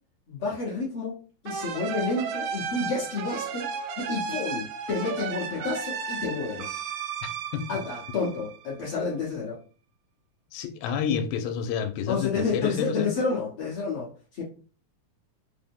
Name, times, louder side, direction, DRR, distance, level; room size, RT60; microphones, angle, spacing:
voice 1, 0.3-6.8 7.7-9.6 12.1-14.4, left 4 dB, 60° left, -5 dB, 1.5 m, -30 dB
sound 1, 1.5-8.9, right 6 dB, 80° right, 1.9 m, -34 dB
voice 2, 10.5-13.2, left 7 dB, 85° left, 7 dB, 2.3 m, -29 dB
5.6 x 2.1 x 3.5 m, 0.37 s
omnidirectional pair, 4.0 m